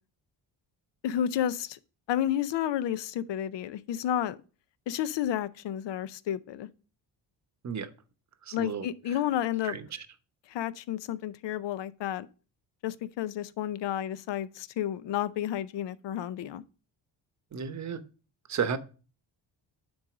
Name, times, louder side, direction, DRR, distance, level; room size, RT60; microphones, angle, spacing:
voice 1, 1.0-1.8 2.1-4.4 4.9-6.7 8.5-9.8 10.5-12.3 12.8-16.6, left 11 dB, 65° left, 0.7 m, -31 dB
voice 2, 8.5-8.9 9.6-9.8 17.5-18.0 18.5-18.8, right 6 dB, 35° right, 0.9 m, -32 dB
9.5 x 4.0 x 5.0 m
cardioid pair, 100°, 46 cm